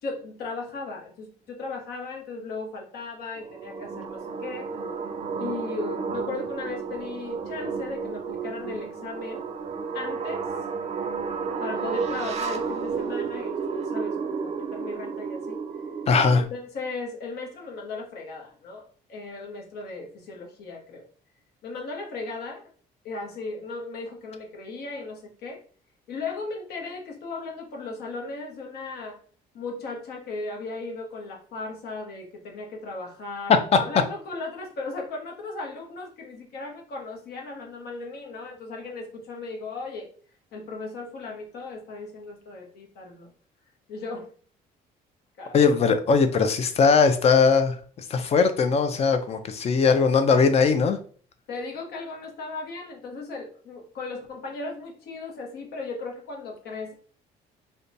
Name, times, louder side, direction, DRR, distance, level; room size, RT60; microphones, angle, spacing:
voice 1, 0.0-4.7 5.4-9.5 9.9-10.5 11.6-13.5 13.8-15.6 16.3-21.0 21.6-22.7 23.0-25.6 26.1-29.2 29.5-40.1 40.5-43.3 43.9-44.3 45.4-45.7 51.5-56.9, left 3 dB, 70° left, 1 dB, 0.9 m, -36 dB
sound 1, 3.4-16.5, right 5 dB, 40° right, 0.4 m, -32 dB
voice 2, 16.1-16.4 33.5-33.6 45.5-51.0, left 5 dB, 40° left, 9 dB, 0.4 m, -20 dB
2.7 x 2.2 x 2.6 m, 0.44 s
cardioid pair, 110°, 17 cm